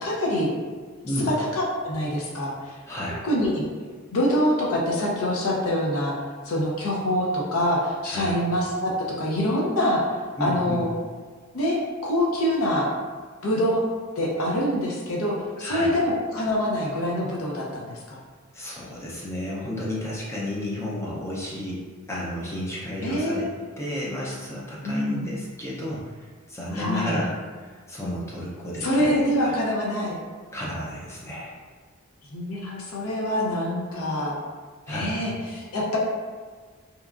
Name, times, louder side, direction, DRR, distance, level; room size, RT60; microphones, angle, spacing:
voice 1, 0.0-0.5 0.9-2.7 3.2-3.6 4.1-6.1 6.4-8.9 9.2-10.0 10.4-10.9 11.5-11.8 12.0-12.9 13.4-13.8 14.2-18.2 23.0-23.4 24.8-25.3 26.7-27.2 28.8-30.2 32.3-34.4 34.9-36.0, left 1 dB, 75° left, -3 dB, 0.6 m, -25 dB
voice 2, 2.9-3.2 8.0-8.4 10.4-10.8 15.6-16.0 18.5-21.8 22.1-23.5 23.8-29.5 30.5-31.6 34.9-35.3, left 1 dB, 15° left, -6 dB, 0.4 m, -32 dB
2.8 x 2.3 x 2.3 m, 1.5 s
head